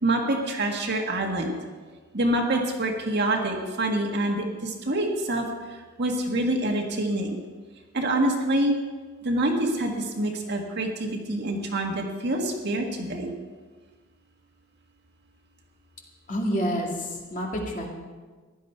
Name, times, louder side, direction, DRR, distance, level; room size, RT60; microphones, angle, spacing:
voice 1, 0.0-1.5 2.1-7.4 7.9-8.8 9.2-13.3, right 1 dB, 55° right, 1 dB, 1.9 m, -26 dB
voice 2, 16.3-17.9, equal, 40° left, -1 dB, 2.3 m, -28 dB
15.5 x 11.5 x 4.7 m, 1.4 s
head